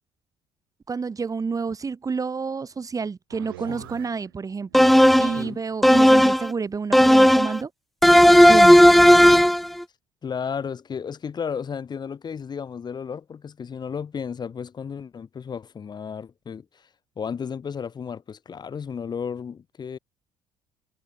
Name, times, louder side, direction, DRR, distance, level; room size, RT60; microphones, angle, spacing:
voice 1, 0.9-4.9 5.2-7.7 8.5-8.8, right 5 dB, 30° right, 2.6 m, -29 dB
sound 1, 3.3-4.3 4.6-5.7, right 15 dB, 75° right, 2.9 m, -43 dB
sound 2, 4.7-5.4 5.8-6.5 6.9-7.6 8.0-9.7, equal, ahead, 0.3 m, -13 dB
voice 2, 10.2-16.9 17.2-20.0, left 6 dB, 35° left, 2.6 m, -33 dB
figure-of-eight pair, 50°, 12 cm